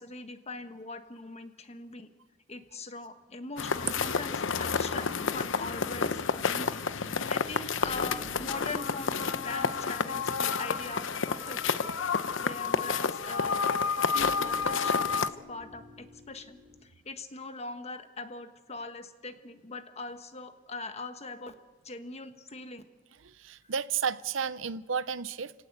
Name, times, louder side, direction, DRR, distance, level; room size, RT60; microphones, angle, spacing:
voice 1, 0.0-2.1 2.5-13.6 13.9-21.5 21.8-22.8 23.6-23.7, left 3 dB, 35° left, 1.5 m, -42 dB
sound 1, 3.6-15.3, left 5 dB, 70° left, 0.9 m, -30 dB
sound 2, 7.8-16.8, left 1 dB, ahead, 5.5 m, -50 dB
voice 2, 23.2-25.5, right 6 dB, 75° right, 0.7 m, -32 dB
29.5 x 17.5 x 8.2 m
head